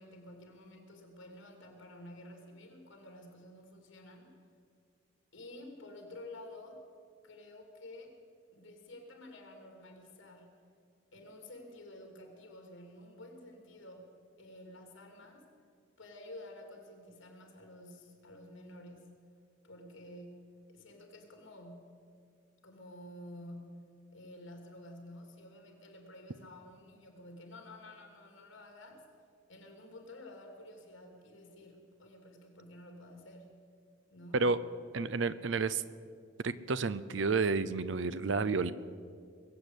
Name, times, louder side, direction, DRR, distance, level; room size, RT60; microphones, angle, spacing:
voice 1, 0.0-4.4 5.3-6.8 7.2-8.1 8.5-10.6 11.1-15.5 16.0-19.1 19.6-22.0 22.6-29.0 29.5-33.6 34.1-34.5 37.8-38.1, left 1 dB, 85° left, 3 dB, 2.9 m, -51 dB
voice 2, 34.9-35.8 36.4-38.7, right 4 dB, 70° right, 15 dB, 0.6 m, -30 dB
21.5 x 8.0 x 8.2 m, 2.1 s
head